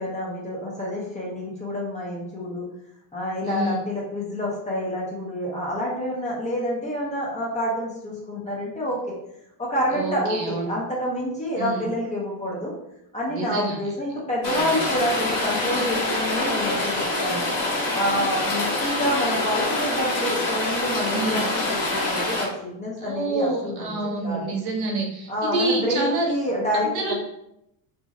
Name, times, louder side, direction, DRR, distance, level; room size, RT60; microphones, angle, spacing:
voice 1, 0.0-2.7 3.1-9.2 9.6-12.7 13.1-17.5 17.9-24.5 25.3-27.1, equal, 15° left, -5 dB, 0.6 m, -28 dB
voice 2, 3.4-3.8 9.9-10.7 11.6-11.9 13.3-13.8 14.5-14.9 18.1-18.2 21.1-21.4 23.0-26.3 26.8-27.1, right 2 dB, 60° right, 1 dB, 0.8 m, -27 dB
Rain, 14.4-22.4, left 2 dB, 50° left, 1.2 m, -25 dB
2.9 x 2.6 x 2.5 m, 0.80 s
cardioid pair, 165°, 43 cm